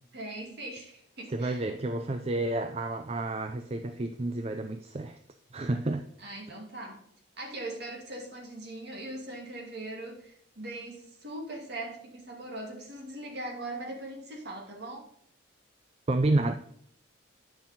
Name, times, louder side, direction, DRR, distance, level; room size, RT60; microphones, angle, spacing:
voice 1, 0.1-1.7 6.2-7.0 7.4-15.1, right 1 dB, 50° right, 0 dB, 2.3 m, -40 dB
voice 2, 1.3-5.2 5.5-6.1 16.1-16.5, right 2 dB, 30° right, 7 dB, 0.4 m, -30 dB
9.3 x 5.7 x 4.1 m, 0.69 s
head